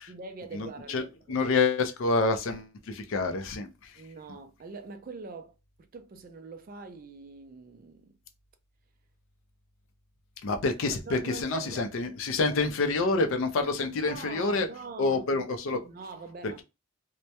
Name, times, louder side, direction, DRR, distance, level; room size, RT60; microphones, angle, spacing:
voice 1, 0.0-1.5 4.0-5.6 5.9-8.1 10.9-12.1 13.8-15.2 15.8-16.6, right 4 dB, 40° right, 0.3 m, -43 dB
voice 2, 0.5-4.0 10.4-14.7 15.0-15.9 16.4-16.6, left 3 dB, 65° left, 0.4 m, -28 dB
2.2 x 2.0 x 2.7 m
head